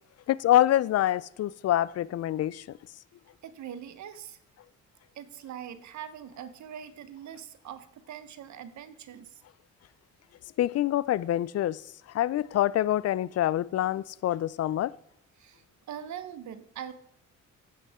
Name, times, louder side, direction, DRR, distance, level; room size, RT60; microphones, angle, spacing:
voice 1, 0.3-2.6 10.6-11.8 12.1-14.9, left 13 dB, 55° left, 0.5 m, -26 dB
voice 2, 3.4-4.4 5.1-9.4 15.4-16.9, right 9 dB, 70° right, 1.2 m, -42 dB
15.0 x 8.3 x 3.7 m
cardioid pair, 90°, 30 cm